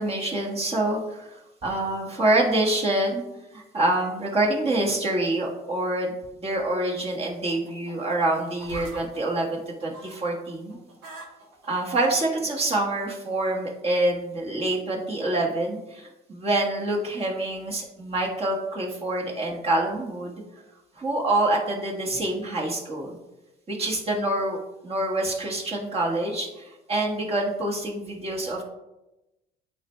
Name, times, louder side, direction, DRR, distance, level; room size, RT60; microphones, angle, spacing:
voice 1, 0.0-3.2 3.5-6.1 6.4-10.8 11.7-20.4 21.0-23.2 23.7-24.6 24.8-28.6, right 1 dB, 35° right, -2 dB, 1.5 m, -26 dB
sound 1, 7.0-10.3 10.6-11.9 12.6-12.7, right 1 dB, 80° right, 1.9 m, -44 dB
8.9 x 3.4 x 3.2 m, 0.97 s
supercardioid pair, 80°, 17 cm